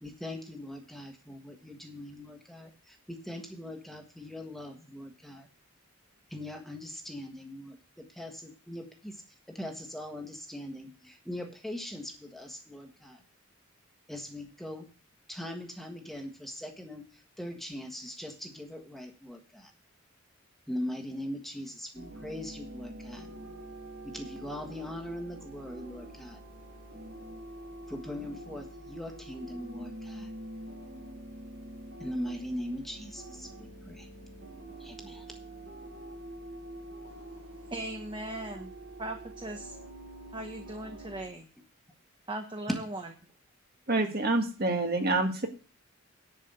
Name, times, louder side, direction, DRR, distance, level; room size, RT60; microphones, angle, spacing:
voice 1, 0.0-5.5 6.3-9.2 9.5-13.2 14.1-14.9 15.3-19.7 20.7-23.3 24.0-26.4 27.9-30.3 32.0-34.1 34.8-35.3, left 1 dB, ahead, 3 dB, 1.4 m, -41 dB
sound 1, 21.9-41.3, right 1 dB, 70° right, 4.9 m, -46 dB
voice 2, 37.6-38.7 39.0-39.8 40.3-41.5 42.3-43.0, right 1 dB, 25° right, 4 dB, 1.0 m, -38 dB
voice 3, 43.9-45.5, right 2 dB, 45° right, 4 dB, 1.6 m, -27 dB
10.5 x 4.9 x 8.1 m, 0.36 s
head